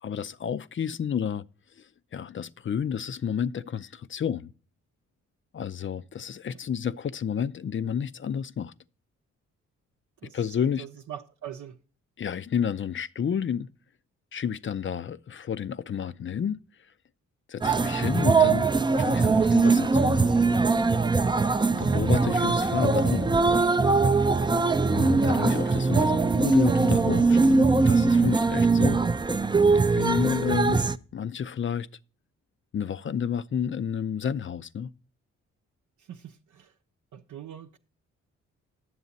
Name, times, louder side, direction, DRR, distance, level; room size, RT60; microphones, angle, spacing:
voice 1, 0.0-1.4 1.8-4.5 5.5-8.7 10.3-10.8 12.2-13.7 14.3-16.6 17.5-18.7 19.0-20.4 21.7-23.3 24.9-29.0 29.9-30.8 31.1-31.9 32.7-34.9, left 8 dB, 40° left, 0.5 m, -30 dB
voice 2, 10.8-11.8 22.0-22.1 25.2-25.5 36.0-36.7 37.1-37.8, right 10 dB, 65° right, 0.7 m, -43 dB
sound 1, 17.6-31.0, right 4 dB, 15° right, 0.4 m, -22 dB
9.5 x 7.1 x 4.0 m
supercardioid pair, 50°, 32 cm